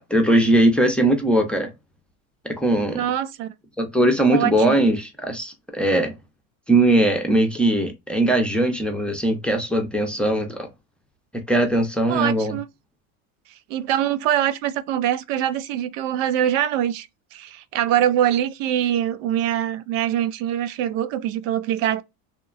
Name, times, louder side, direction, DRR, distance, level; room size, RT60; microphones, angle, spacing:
voice 1, 0.0-1.7 2.4-3.0 3.8-6.1 6.7-10.7 11.5-12.6, right 1 dB, 5° left, 0.5 m, -20 dB
voice 2, 2.9-3.5 4.3-4.8 12.1-12.7 13.7-22.0, right 11 dB, 80° right, 0.5 m, -23 dB
2.8 x 2.1 x 2.4 m
supercardioid pair, 115°, 38 cm